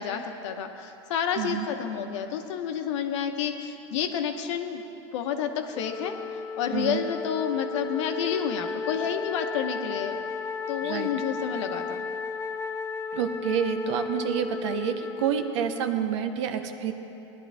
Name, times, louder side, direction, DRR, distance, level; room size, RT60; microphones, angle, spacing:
voice 1, 0.0-4.8 5.1-6.1 6.6-10.2 10.7-12.0, left 8 dB, 75° left, 6 dB, 1.1 m, -30 dB
voice 2, 1.4-1.7 6.7-7.0 10.8-11.1 13.1-16.9, right 9 dB, 75° right, 8 dB, 1.0 m, -28 dB
Wind instrument woodwind instrument, 5.7-16.1, left 4 dB, 15° left, 0.4 m, -34 dB
18.0 x 11.5 x 3.5 m, 2.9 s
supercardioid pair, 130°, 15 cm